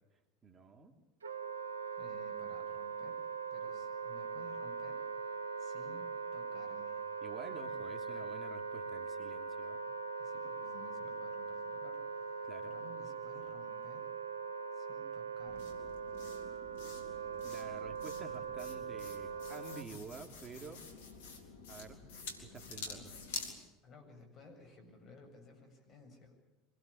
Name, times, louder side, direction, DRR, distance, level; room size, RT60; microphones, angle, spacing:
voice 1, 0.4-0.9 7.2-9.8 12.4-12.8 17.4-20.8 21.7-22.0 22.4-23.1, right 4 dB, 30° right, 4 dB, 3.0 m, -50 dB
Wind instrument woodwind instrument, 1.2-19.9, right 5 dB, 85° right, 1.3 m, -41 dB
voice 2, 2.0-3.2 3.5-5.0 5.6-7.0 10.2-14.1 14.7-15.9 22.8-23.1 23.8-26.4, left 2 dB, 40° left, 5 dB, 7.8 m, -57 dB
sound 1, 15.4-23.6, left 4 dB, 70° left, 3.7 m, -48 dB
25.5 x 19.5 x 8.7 m, 1.0 s
hypercardioid pair, 80°, 0 cm